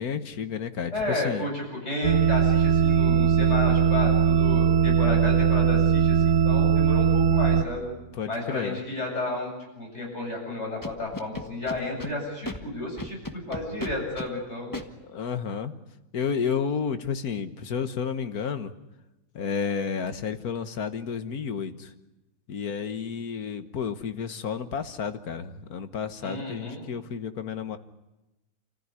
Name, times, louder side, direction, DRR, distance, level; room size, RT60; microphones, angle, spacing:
voice 1, 0.0-1.5 8.2-8.8 14.7-15.7 16.1-18.7 19.3-21.9 22.5-27.8, left 6 dB, 80° left, 10 dB, 1.8 m, -31 dB
voice 2, 0.9-7.9 8.3-14.7 26.2-26.8, left 2 dB, 50° left, -1 dB, 8.5 m, -32 dB
sound 1, 2.0-7.6, right 7 dB, 70° right, 1.5 m, -20 dB
Scratching (performance technique), 10.8-12.1 12.4-12.6 13.0-14.3 14.7-14.8, left 1 dB, 15° left, 1.4 m, -34 dB
29.0 x 15.0 x 9.8 m, 1.0 s
omnidirectional pair, 1.6 m